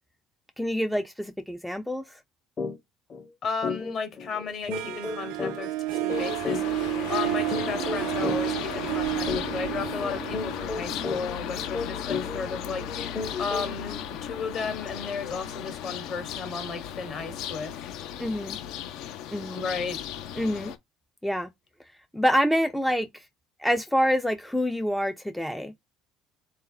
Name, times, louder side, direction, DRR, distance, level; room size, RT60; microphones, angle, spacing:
voice 1, 0.6-2.2 18.2-18.6 19.3-19.6 20.4-20.7 21.2-21.5 22.1-23.2 23.6-25.7, equal, ahead, 0.3 m, -26 dB
sound 1, 2.6-2.8 3.1-3.2 3.6-13.9, left 4 dB, 30° left, 0.7 m, -34 dB
voice 2, 3.4-6.8 7.1-17.7 19.5-20.0, left 5 dB, 45° left, 1.2 m, -34 dB
Harp, 4.7-11.6, right 16 dB, 85° right, 0.3 m, -31 dB
sound 2, 6.1-20.8, left 9 dB, 65° left, 0.6 m, -36 dB
3.9 x 2.8 x 3.8 m
cardioid pair, 135°, 0 cm